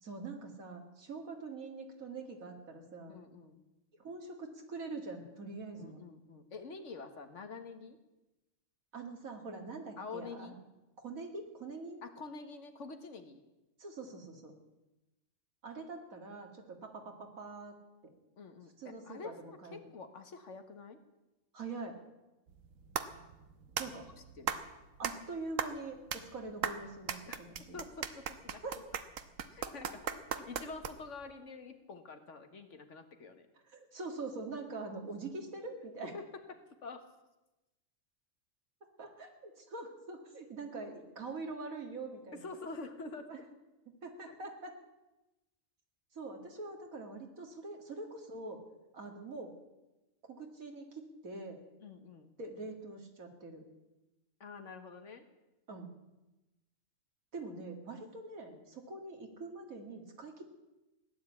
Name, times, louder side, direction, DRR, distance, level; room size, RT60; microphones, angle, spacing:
voice 1, 0.0-3.2 3.9-6.0 8.9-10.5 11.0-12.0 13.8-14.5 15.6-17.8 18.0-18.1 18.8-19.8 21.5-22.0 23.8-24.1 24.4-24.5 25.0-27.8 28.6-28.8 33.7-36.1 39.0-42.5 43.3-43.4 43.9-44.7 46.1-48.6 48.9-49.5 50.3-51.6 52.4-53.6 55.7-55.9 57.3-60.4, right 3 dB, 90° right, 3 dB, 2.6 m, -44 dB
voice 2, 3.1-3.6 5.8-8.0 10.0-10.6 12.0-13.4 18.4-18.7 19.0-21.0 24.4-24.6 27.3-28.6 29.5-33.5 36.0-37.1 42.3-43.3 44.2-44.3 51.8-52.3 54.4-55.3, left 4 dB, 60° left, 7 dB, 1.8 m, -47 dB
sound 1, 22.5-31.2, right 7 dB, 75° right, 1.3 m, -39 dB
17.0 x 10.0 x 8.5 m, 1.0 s
omnidirectional pair, 1.4 m